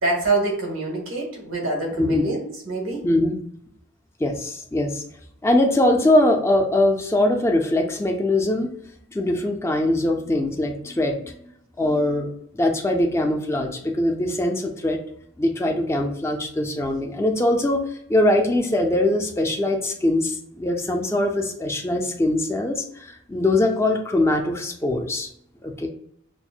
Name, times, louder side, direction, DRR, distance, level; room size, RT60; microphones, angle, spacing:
voice 1, 0.0-3.0, right 2 dB, 90° right, 0 dB, 1.3 m, -25 dB
voice 2, 2.0-2.3 3.0-3.4 4.2-5.0 5.4-11.5 11.8-12.3 12.5-15.0 15.4-17.8 18.1-25.3 25.6-25.9, left 1 dB, 15° left, 2 dB, 0.4 m, -22 dB
5.9 x 2.0 x 2.3 m, 0.71 s
head